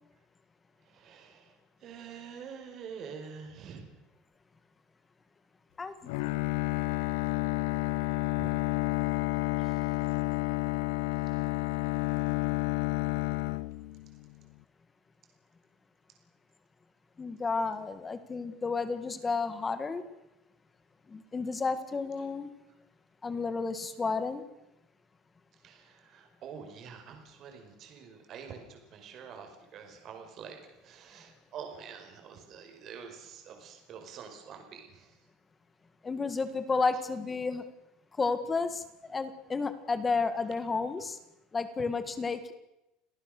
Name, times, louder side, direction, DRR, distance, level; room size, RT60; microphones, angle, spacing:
voice 1, 0.8-4.0 8.4-8.5 9.6-10.0 25.6-35.2 39.1-39.2, right 6 dB, 35° right, 4 dB, 4.9 m, -47 dB
voice 2, 5.8-6.1 17.2-20.0 21.1-22.5 23.2-24.4 36.0-37.7 38.2-41.2 41.5-42.5, left 4 dB, 15° left, 12 dB, 1.8 m, -32 dB
Bowed string instrument, 6.1-14.3, left 21 dB, 75° left, 0.8 m, -30 dB
28.5 x 18.0 x 6.7 m, 0.90 s
cardioid pair, 170°, 0 cm